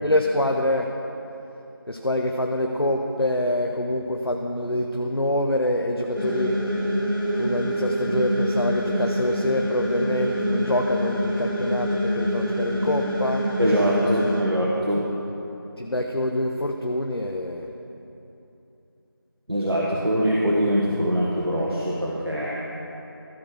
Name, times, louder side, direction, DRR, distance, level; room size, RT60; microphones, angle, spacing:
voice 1, 0.0-0.9 1.9-6.6 7.4-13.5 15.8-17.7, left 1 dB, 90° left, 2 dB, 0.7 m, -25 dB
sound 1, 6.2-14.4, equal, 65° right, 2.4 m, -26 dB
voice 2, 13.6-15.0 19.5-22.5, equal, 90° right, -5 dB, 1.5 m, -23 dB
14.0 x 4.8 x 6.4 m, 2.9 s
figure-of-eight pair, 180°, 12 cm